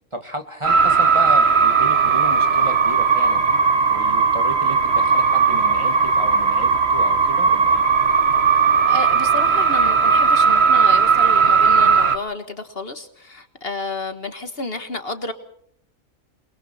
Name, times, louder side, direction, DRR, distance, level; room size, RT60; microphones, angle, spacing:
voice 1, 0.1-3.4 3.9-7.8, right 1 dB, 20° right, 7 dB, 1.8 m, -33 dB
sound 1, 0.6-12.2, right 5 dB, 55° right, 1.4 m, -17 dB
voice 2, 8.4-15.3, left 3 dB, 45° left, 9 dB, 1.8 m, -31 dB
28.5 x 22.5 x 4.3 m, 0.66 s
omnidirectional pair, 1.4 m